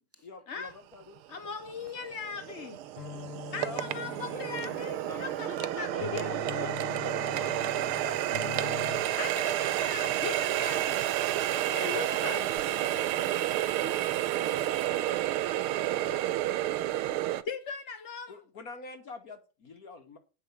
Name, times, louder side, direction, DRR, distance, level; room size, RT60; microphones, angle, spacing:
voice 1, 0.2-1.2 3.5-4.5 18.3-20.2, left 3 dB, 50° left, 1.5 m, -46 dB
Water tap faucet, 0.9-1.0 1.6-17.4, right 13 dB, 85° right, 1.6 m, -30 dB
voice 2, 1.3-2.8 3.5-6.3 9.1-11.0 11.5-12.4 17.5-18.4, left 5 dB, 65° left, 0.6 m, -39 dB
sound 1, 3.0-9.1, left 11 dB, 90° left, 1.8 m, -43 dB
voice 3, 5.0-8.2 11.6-14.0 14.3-15.4, right 1 dB, 5° right, 1.7 m, -45 dB
8.6 x 6.2 x 8.1 m
omnidirectional pair, 2.3 m